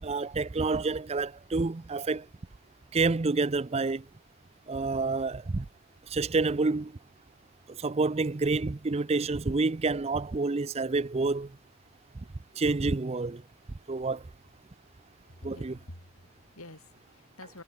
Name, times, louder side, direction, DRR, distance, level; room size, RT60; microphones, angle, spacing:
voice 1, 0.0-2.3 2.9-4.0 4.7-5.7 6.1-6.9 7.7-11.5 12.6-13.4 13.9-14.2 15.4-15.7, right 3 dB, 30° right, 0.5 m, -28 dB
voice 2, 15.2-17.6, left 1 dB, 75° left, 6.2 m, -49 dB
head